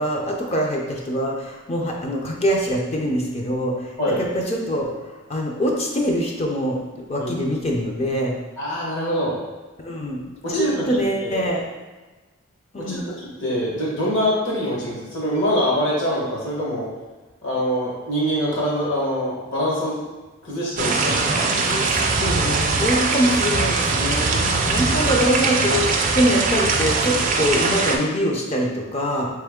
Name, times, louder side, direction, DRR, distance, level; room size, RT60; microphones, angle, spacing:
voice 1, 0.0-8.4 9.8-11.6 12.7-13.1 21.4-29.3, equal, 30° left, 0 dB, 0.5 m, -24 dB
voice 2, 8.6-9.4 10.4-11.5 12.7-13.0 13.4-16.9 17.4-20.0 20.4-21.5, equal, 60° left, -5 dB, 1.3 m, -24 dB
sound 1, 20.8-28.0, right 3 dB, 35° right, 0.4 m, -21 dB
3.4 x 3.3 x 3.6 m, 1.2 s
head